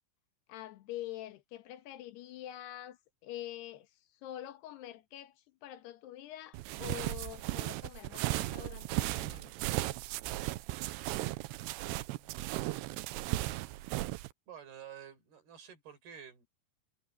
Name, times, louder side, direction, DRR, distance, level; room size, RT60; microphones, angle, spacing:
voice 1, 0.5-3.9 4.2-9.5, left 13 dB, 80° left, 3.2 m, -45 dB
sound 1, 6.5-14.3, right 18 dB, 90° right, 2.7 m, -36 dB
voice 2, 14.5-16.5, right 9 dB, 65° right, 6.7 m, -50 dB
omnidirectional pair, 4.8 m